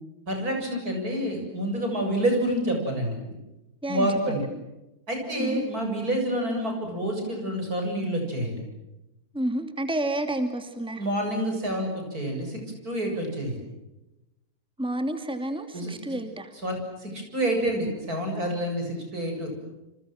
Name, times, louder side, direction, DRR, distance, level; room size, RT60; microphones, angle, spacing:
voice 1, 0.3-3.1 3.9-4.4 5.1-8.6 11.0-13.6 15.7-16.2 16.6-19.5, right 1 dB, 80° right, 3 dB, 8.0 m, -28 dB
voice 2, 3.8-4.4 5.4-5.6 9.3-11.0 14.8-16.5, right 1 dB, 5° right, 7 dB, 2.4 m, -30 dB
29.0 x 27.0 x 7.6 m, 0.96 s
omnidirectional pair, 1.6 m